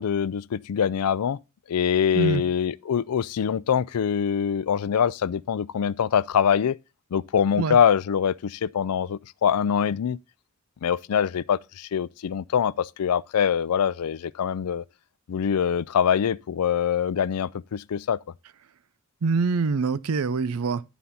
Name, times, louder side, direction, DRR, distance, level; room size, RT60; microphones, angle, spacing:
voice 1, 0.0-1.4 1.7-6.8 7.1-10.2 10.8-14.8 15.3-18.2, left 8 dB, 90° left, 0.4 m, -24 dB
voice 2, 19.2-20.8, right 4 dB, 70° right, 0.5 m, -24 dB
11.5 x 4.1 x 5.5 m
head